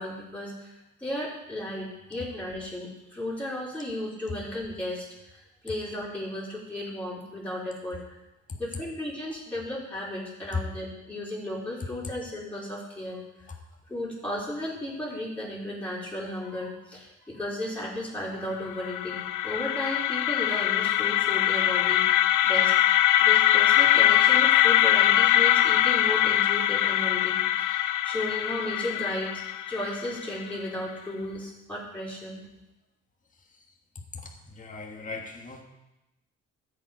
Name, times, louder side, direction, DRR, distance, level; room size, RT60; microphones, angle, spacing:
voice 1, 0.0-5.1 5.3-8.0 8.5-13.2 13.9-22.7 23.2-29.3 29.7-32.4, left 1 dB, 5° left, -7 dB, 4.2 m, -34 dB
sound 1, 18.6-30.5, left 13 dB, 80° left, 0.5 m, -22 dB
voice 2, 34.1-35.6, left 3 dB, 25° left, 1 dB, 1.6 m, -40 dB
13.0 x 7.5 x 5.0 m, 0.96 s
cardioid pair, 90°, 30 cm